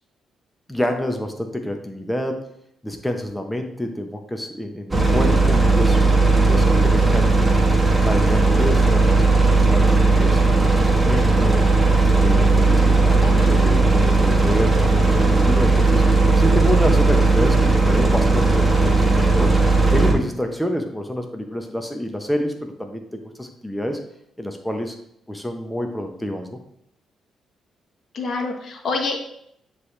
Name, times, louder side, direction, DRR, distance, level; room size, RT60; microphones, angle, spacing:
voice 1, 0.7-2.4 2.8-7.3 8.0-11.6 12.2-16.0 16.4-19.6 19.9-24.0 24.4-25.0 25.3-26.6, equal, 5° left, 4 dB, 0.9 m, -27 dB
sound 1, 4.9-20.1, right 3 dB, 15° right, 1.4 m, -16 dB
voice 2, 13.2-13.9 28.1-29.2, left 3 dB, 60° left, 3 dB, 1.1 m, -28 dB
9.3 x 3.3 x 3.2 m, 0.74 s
supercardioid pair, 70°, 0 cm